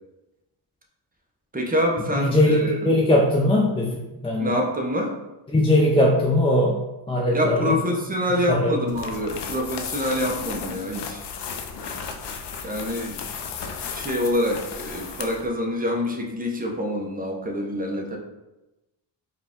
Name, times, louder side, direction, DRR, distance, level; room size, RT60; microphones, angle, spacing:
voice 1, 1.5-2.8 4.4-5.1 7.3-11.2 12.6-13.2 13.8-18.2, equal, 20° right, 0 dB, 0.8 m, -26 dB
voice 2, 2.2-4.5 5.5-6.8 7.1-7.8 8.5-8.8, left 1 dB, 10° left, -3 dB, 0.5 m, -20 dB
sound 1, 8.9-15.5, left 6 dB, 65° left, 0.6 m, -34 dB
4.6 x 2.4 x 3.6 m, 1.0 s
cardioid pair, 85°, 46 cm